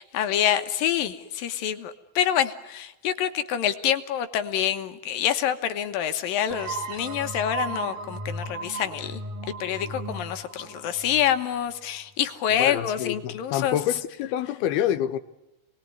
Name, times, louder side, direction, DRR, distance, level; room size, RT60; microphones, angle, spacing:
voice 1, 0.0-9.2 9.6-13.8, left 10 dB, 70° left, 2.9 m, -26 dB
sound 1, 6.5-12.0, right 3 dB, 60° right, 3.5 m, -35 dB
voice 2, 12.6-15.2, left 11 dB, 85° left, 3.1 m, -27 dB
28.5 x 21.5 x 9.6 m
omnidirectional pair, 4.3 m